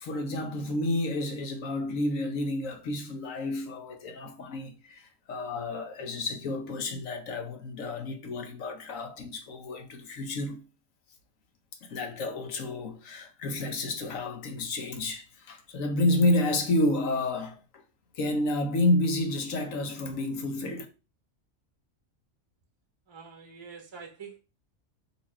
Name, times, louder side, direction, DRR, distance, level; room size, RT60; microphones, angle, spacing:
voice 1, 0.0-10.6 11.8-17.6 18.2-20.9, left 2 dB, 85° left, 1.3 m, -30 dB
voice 2, 23.1-24.4, right 5 dB, 30° right, 0.5 m, -45 dB
4.3 x 2.8 x 4.2 m
omnidirectional pair, 1.3 m